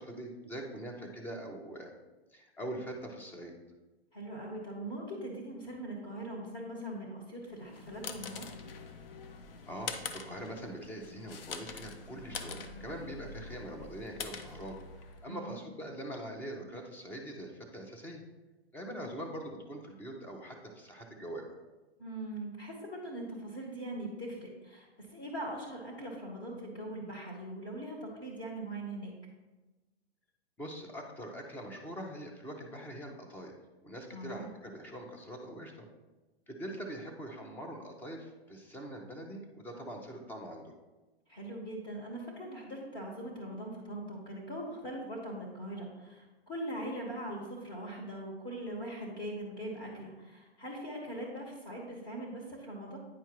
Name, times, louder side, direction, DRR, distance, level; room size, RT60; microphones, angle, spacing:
voice 1, 0.0-1.9 2.3-3.5 9.6-18.2 18.7-21.6 30.6-33.6 33.8-35.9 36.5-40.8, right 1 dB, 5° left, 2 dB, 0.5 m, -43 dB
voice 2, 4.1-8.5 15.3-15.5 22.0-29.1 34.1-34.5 41.3-53.0, right 1 dB, 30° left, -1 dB, 1.4 m, -41 dB
sound 1, 7.5-15.3, left 5 dB, 60° left, 0.7 m, -44 dB
9.3 x 4.5 x 3.0 m, 1.2 s
hypercardioid pair, 130°, 32 cm